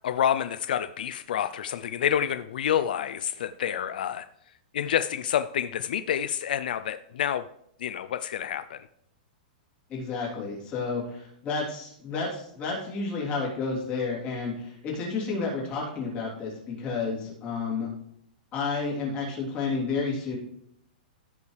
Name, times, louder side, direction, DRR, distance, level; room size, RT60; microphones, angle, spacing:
voice 1, 0.0-4.3 4.7-7.5 7.8-8.9, left 9 dB, 70° left, 11 dB, 0.4 m, -28 dB
voice 2, 9.9-17.9 18.5-20.4, left 4 dB, 25° left, -4 dB, 3.2 m, -31 dB
15.0 x 5.4 x 3.3 m, 0.72 s
supercardioid pair, 165°, 5 cm